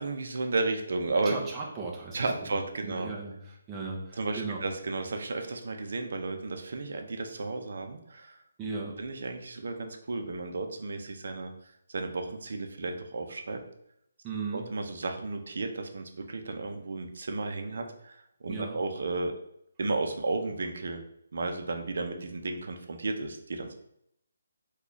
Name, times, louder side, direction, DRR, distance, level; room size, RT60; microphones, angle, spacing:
voice 1, 0.0-1.4 2.1-3.1 4.2-8.4 9.0-13.6 14.5-19.3 19.8-21.0 21.3-23.7, right 3 dB, 60° right, 5 dB, 0.6 m, -33 dB
voice 2, 1.2-2.5 2.8-4.6 8.6-9.0 14.2-14.7 18.5-18.8, right 4 dB, 15° right, -3 dB, 0.5 m, -37 dB
3.0 x 2.3 x 3.8 m, 0.75 s
hypercardioid pair, 165°, 0 cm